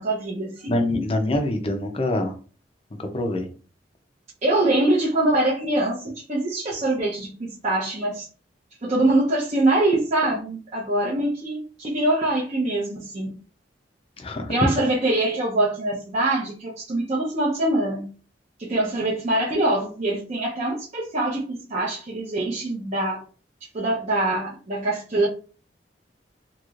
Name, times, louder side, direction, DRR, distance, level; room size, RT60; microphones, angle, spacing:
voice 1, 0.0-0.8 4.4-8.3 8.8-13.4 14.5-18.0 18.6-23.2 23.7-25.3, right 2 dB, 40° right, 0.7 m, -24 dB
voice 2, 0.7-2.3 3.0-3.5 14.2-14.5, left 1 dB, 30° left, 0.5 m, -25 dB
3.0 x 2.9 x 2.4 m
head